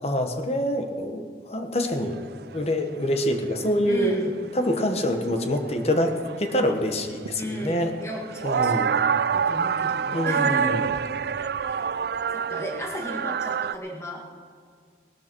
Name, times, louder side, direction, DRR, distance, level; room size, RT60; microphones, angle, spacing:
voice 1, 0.0-2.2 2.5-4.3 4.5-7.9 8.4-9.0 10.1-10.9, equal, 35° left, 6 dB, 1.2 m, -26 dB
sound 1, 1.8-1.9 2.2-2.3 2.5-3.0 3.4-4.8 5.2-13.7, right 7 dB, 60° right, 0.3 m, -27 dB
voice 2, 3.9-4.3 7.4-9.0 9.3-10.8 11.6-11.9 12.3-14.2, equal, 15° left, 0 dB, 1.9 m, -35 dB
19.0 x 12.5 x 4.6 m, 2.1 s
head